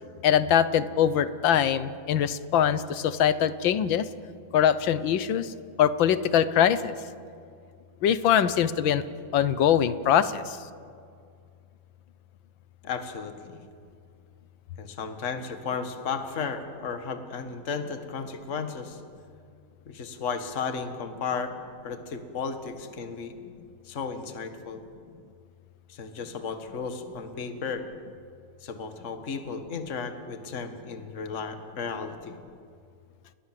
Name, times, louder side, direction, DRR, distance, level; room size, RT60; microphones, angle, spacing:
voice 1, 0.2-4.1 4.5-5.5 5.8-6.9 8.0-9.0 9.3-10.7, left 9 dB, 65° left, 14 dB, 1.6 m, -23 dB
voice 2, 12.8-13.6 14.8-19.0 19.9-21.5 21.8-23.4 23.8-24.8 25.9-27.9 28.6-32.3, left 5 dB, 35° left, 7 dB, 1.8 m, -34 dB
30.0 x 21.5 x 7.6 m, 2.3 s
omnidirectional pair, 2.3 m